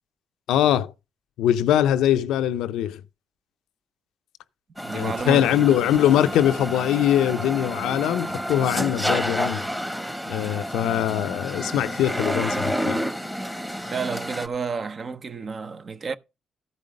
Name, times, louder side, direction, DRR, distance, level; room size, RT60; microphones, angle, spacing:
voice 1, 0.5-0.9 1.4-3.0 4.9-9.6 10.3-13.0, left 11 dB, 85° left, 0.5 m, -22 dB
sound 1, 4.8-14.5, equal, 5° right, 1.2 m, -29 dB
voice 2, 4.8-5.5 13.9-16.2, right 5 dB, 40° right, 0.8 m, -30 dB
14.0 x 5.4 x 5.0 m
cardioid pair, 90°, 0 cm